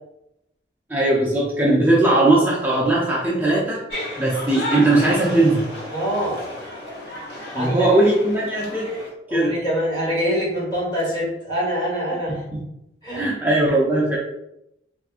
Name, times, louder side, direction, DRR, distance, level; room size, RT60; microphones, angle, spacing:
voice 1, 0.9-3.8 4.2-5.7 7.5-8.9 9.3-9.5 12.5-12.6 13.1-14.2, right 2 dB, 10° right, -5 dB, 0.5 m, -19 dB
sound 1, 3.9-9.1, left 1 dB, 60° left, 1.0 m, -33 dB
voice 2, 5.9-6.4 7.5-7.9 9.3-12.4 13.0-13.3, equal, 25° left, -6 dB, 1.5 m, -24 dB
3.5 x 2.5 x 2.4 m, 0.85 s
head